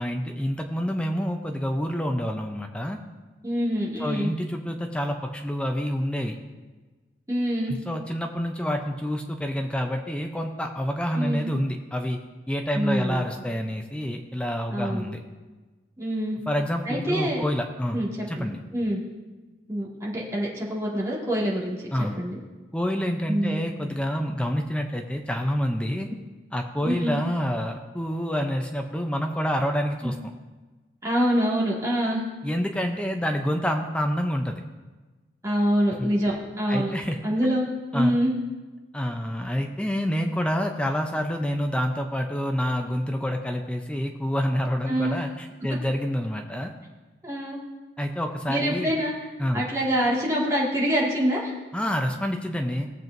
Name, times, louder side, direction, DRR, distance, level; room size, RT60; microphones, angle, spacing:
voice 1, 0.0-3.0 4.0-6.4 7.7-12.2 12.5-15.2 16.5-18.0 18.3-18.6 21.9-22.2 22.7-26.1 26.5-30.3 32.4-34.6 36.0-36.1 36.7-37.2 37.9-38.2 38.9-46.7 48.0-48.9 49.4-49.7 51.7-52.9, equal, 5° left, 3 dB, 0.5 m, -27 dB
voice 2, 3.4-4.3 7.3-7.8 11.1-11.5 12.7-13.2 14.7-15.1 16.0-16.4 16.9-17.4 17.9-19.0 19.7-21.8 22.2-22.4 23.3-23.6 26.8-27.2 30.0-30.1 31.0-32.2 35.4-36.9 37.2-38.3 44.9-45.1 47.2-47.6 48.5-49.1 49.5-51.5, equal, 15° right, -6 dB, 2.0 m, -25 dB
17.5 x 7.6 x 2.6 m, 1.3 s
head